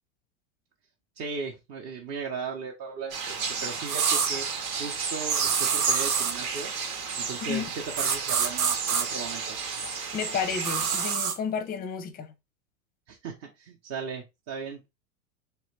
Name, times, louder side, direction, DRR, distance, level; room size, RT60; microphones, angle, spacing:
voice 1, 1.2-4.5 4.8-6.7 7.1-9.6 13.1-14.8, right 5 dB, 35° right, 0.9 m, -37 dB
sound 1, 3.1-11.2, right 5 dB, 70° right, 1.2 m, -32 dB
sound 2, 3.9-4.3 5.3-6.4 8.0-9.0 10.6-11.4, right 7 dB, 85° right, 0.9 m, -26 dB
voice 2, 7.4-7.7 10.1-12.3, left 7 dB, 20° left, 0.6 m, -31 dB
3.3 x 3.1 x 3.2 m
hypercardioid pair, 115°, 44 cm